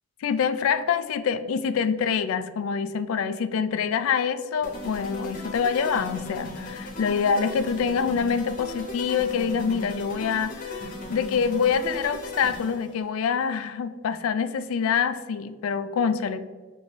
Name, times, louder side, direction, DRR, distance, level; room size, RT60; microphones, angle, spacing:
voice 1, 0.2-16.4, left 6 dB, 70° left, 12 dB, 0.3 m, -26 dB
sound 1, 4.6-13.0, left 2 dB, 40° left, 0.8 m, -37 dB
5.2 x 2.6 x 3.0 m, 1.4 s
head